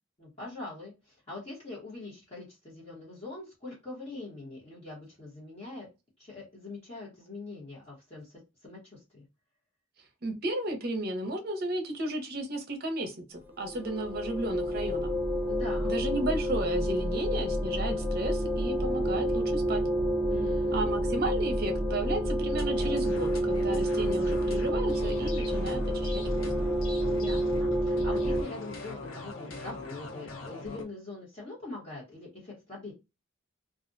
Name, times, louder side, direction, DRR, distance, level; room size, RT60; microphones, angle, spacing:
voice 1, 0.2-5.9 6.2-9.2 15.4-16.0 20.3-21.0 27.1-32.9, left 2 dB, 30° left, -6 dB, 0.9 m, -43 dB
voice 2, 10.2-15.1 15.8-19.8 20.7-26.6, right 1 dB, 50° right, 5 dB, 0.6 m, -33 dB
sound 1, 13.6-28.4, equal, 10° right, 0.6 m, -29 dB
sound 2, 22.6-30.8, left 2 dB, 80° left, 0.6 m, -42 dB
2.4 x 2.1 x 2.5 m, 0.25 s
head